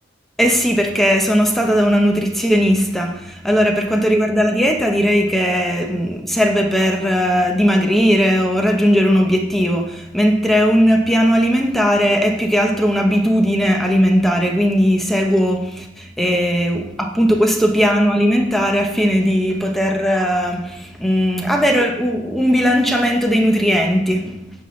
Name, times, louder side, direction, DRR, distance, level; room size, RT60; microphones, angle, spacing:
voice 1, 0.4-24.4, equal, ahead, 0.7 m, -17 dB
9.9 x 5.5 x 3.1 m
head